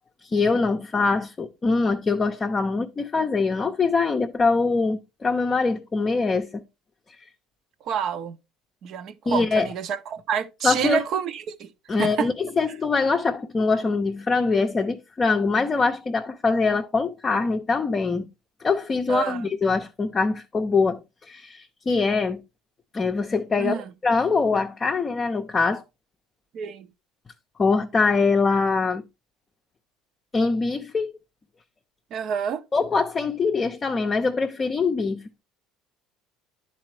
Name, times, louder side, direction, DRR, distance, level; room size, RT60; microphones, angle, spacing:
voice 1, 0.2-6.6 9.3-9.7 10.6-11.0 11.9-18.3 18.6-22.4 22.9-25.8 27.6-29.0 30.3-31.1 32.7-35.4, left 4 dB, 25° left, 0.6 m, -23 dB
voice 2, 7.8-8.4 8.8-11.7 12.0-12.3 19.1-19.5 23.6-23.8 26.5-26.9 32.1-32.6, right 7 dB, 55° right, 0.7 m, -28 dB
10.5 x 4.1 x 3.2 m
cardioid pair, 110°, 0 cm